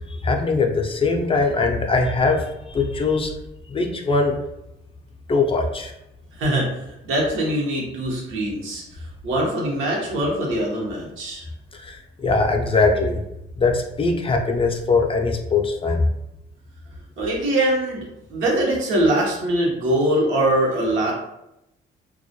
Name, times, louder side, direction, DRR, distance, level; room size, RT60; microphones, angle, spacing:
voice 1, 0.1-3.3 3.7-4.4 5.3-5.9 11.8-13.2 13.6-16.1, left 3 dB, 30° left, 2 dB, 0.4 m, -21 dB
voice 2, 6.4-6.7 7.0-8.8 9.2-11.4 17.2-21.1, right 1 dB, 85° right, -2 dB, 0.8 m, -22 dB
2.2 x 2.1 x 2.6 m, 0.86 s
cardioid pair, 90°, 20 cm